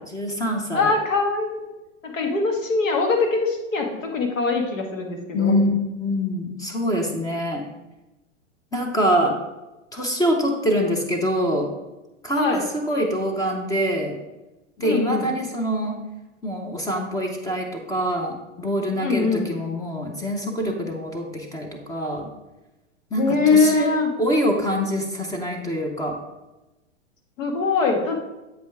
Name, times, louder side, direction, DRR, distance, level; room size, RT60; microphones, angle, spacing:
voice 1, 0.1-0.9 5.3-5.7 6.0-7.6 8.7-9.3 9.9-11.7 12.2-14.2 14.8-16.0 16.4-22.3 23.1-23.9 24.2-26.2, equal, 10° left, 2 dB, 0.6 m, -24 dB
voice 2, 0.7-1.6 2.0-5.7 12.3-12.7 14.8-15.3 19.0-19.5 23.2-24.1 27.4-28.2, left 4 dB, 85° left, 2 dB, 1.6 m, -22 dB
7.7 x 5.1 x 3.4 m, 1.0 s
hypercardioid pair, 130°, 38 cm